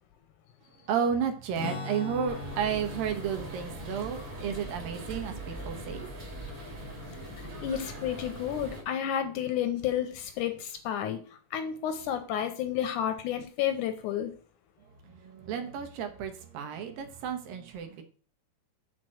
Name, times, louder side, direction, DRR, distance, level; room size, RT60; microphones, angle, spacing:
voice 1, 0.9-6.1 15.0-18.0, right 7 dB, 85° right, 2.9 m, -32 dB
Strum, 1.5-7.2, left 4 dB, 40° left, 1.1 m, -43 dB
sound 1, 2.3-8.8, right 1 dB, 25° right, 2.3 m, -41 dB
voice 2, 7.4-11.2 11.5-14.3, left 10 dB, 80° left, 2.0 m, -31 dB
6.2 x 4.4 x 6.2 m
omnidirectional pair, 4.0 m